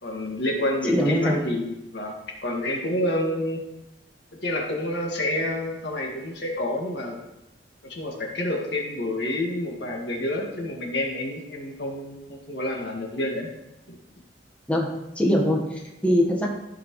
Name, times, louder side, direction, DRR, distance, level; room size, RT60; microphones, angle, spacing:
voice 1, 0.0-2.1 2.4-3.6 4.4-7.1 7.9-13.5 13.9-14.0, left 1 dB, 70° left, 0 dB, 2.0 m, -28 dB
voice 2, 0.9-1.4 14.7-14.9 15.1-16.5, equal, 10° left, -2 dB, 1.3 m, -22 dB
14.5 x 6.0 x 3.2 m, 0.92 s
head